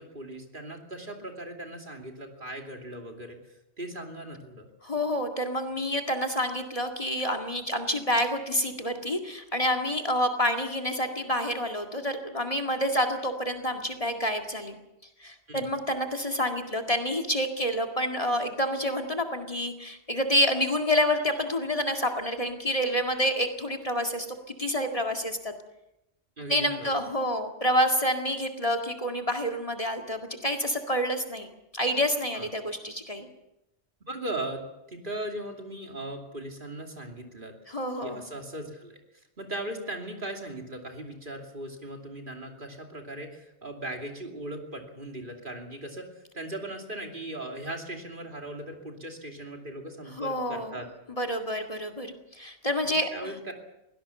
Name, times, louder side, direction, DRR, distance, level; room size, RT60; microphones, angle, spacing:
voice 1, 0.0-3.4 3.8-4.7 15.5-15.7 26.4-27.0 32.3-32.5 34.1-37.5 38.0-39.0 39.4-46.1 46.3-50.9 53.1-53.5, right 1 dB, 45° right, 2 dB, 3.0 m, -38 dB
voice 2, 4.8-14.8 15.2-24.3 24.6-25.5 26.5-33.3 37.7-38.3 50.2-50.8 51.2-53.5, equal, 30° left, 5 dB, 2.1 m, -28 dB
23.0 x 17.5 x 7.1 m, 0.89 s
omnidirectional pair, 1.2 m